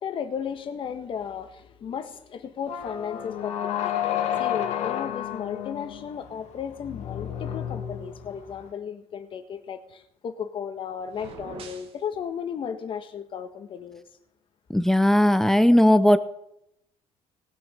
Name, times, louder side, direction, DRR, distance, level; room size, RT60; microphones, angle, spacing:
voice 1, 0.0-3.9 4.4-14.0, left 7 dB, 45° left, 8 dB, 1.5 m, -35 dB
sound 1, 2.7-8.7, left 10 dB, 60° left, 1.9 m, -31 dB
sound 2, 11.0-12.0, right 6 dB, 50° right, 1.9 m, -43 dB
voice 2, 14.7-16.2, left 1 dB, 5° left, 12 dB, 0.6 m, -18 dB
19.5 x 7.0 x 5.1 m, 0.79 s
cardioid pair, 135°, 12 cm